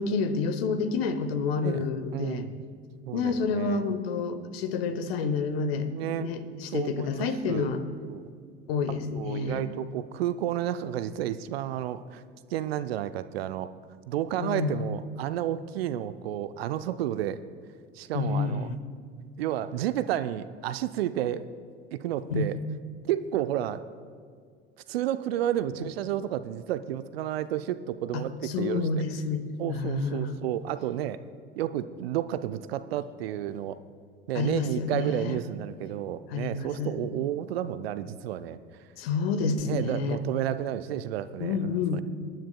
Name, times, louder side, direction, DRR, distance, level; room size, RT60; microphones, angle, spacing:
voice 1, 0.0-2.4 3.1-5.9 6.2-7.8 8.7-9.7 14.4-14.8 18.1-18.8 22.3-22.5 28.1-29.4 29.7-30.4 34.3-35.4 36.3-36.9 39.0-40.2 41.4-42.0, left 4 dB, 60° left, 10 dB, 1.0 m, -29 dB
voice 2, 1.6-2.6 3.1-3.9 5.9-6.3 6.7-7.7 8.1-8.3 9.2-12.2 12.5-13.7 14.1-17.4 17.9-18.7 19.4-21.5 21.9-22.6 23.1-23.8 24.9-28.9 29.6-31.2 31.6-33.8 34.3-38.6 39.7-42.0, right 12 dB, 65° right, 13 dB, 0.6 m, -31 dB
26.5 x 10.0 x 2.3 m, 2.1 s
figure-of-eight pair, 70°, 33 cm